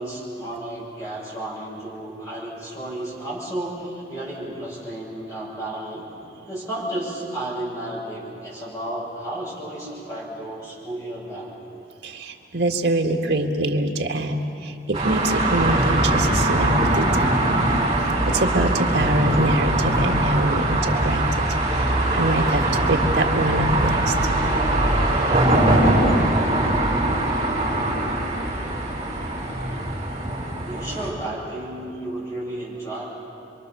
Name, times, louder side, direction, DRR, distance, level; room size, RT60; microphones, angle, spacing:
voice 1, 0.0-6.0 6.5-11.6 30.6-33.1, right 1 dB, 15° left, -5 dB, 7.7 m, -32 dB
voice 2, 12.0-17.8 18.2-22.6 22.9-24.1, right 1 dB, 70° right, 2 dB, 1.9 m, -24 dB
sound 1, 14.9-31.1, right 1 dB, 25° right, 4.8 m, -21 dB
27.5 x 24.0 x 6.8 m, 2.7 s
head